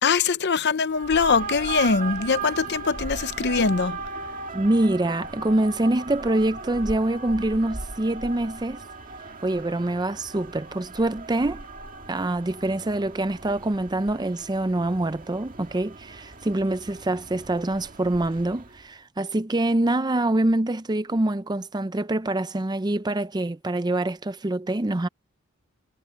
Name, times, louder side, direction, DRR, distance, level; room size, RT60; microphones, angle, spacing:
voice 1, 0.0-4.0, left 5 dB, 55° left, 0.8 m, -22 dB
sound 1, 0.9-18.8, right 3 dB, 45° right, 1.9 m, -37 dB
voice 2, 4.5-8.8 9.4-11.7 12.1-25.1, right 1 dB, 20° right, 0.6 m, -25 dB
head